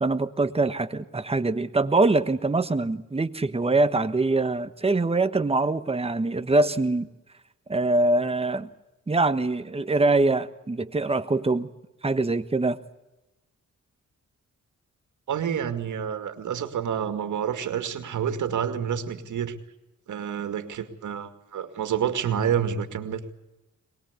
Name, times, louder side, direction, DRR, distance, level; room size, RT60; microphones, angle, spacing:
voice 1, 0.0-7.1 7.7-8.7 9.1-11.7 12.0-12.8, right 2 dB, 20° right, 10 dB, 1.3 m, -23 dB
voice 2, 15.3-19.6 20.1-23.3, right 8 dB, 75° right, 8 dB, 2.4 m, -28 dB
23.0 x 20.5 x 8.3 m, 0.99 s
cardioid pair, 95°, 30 cm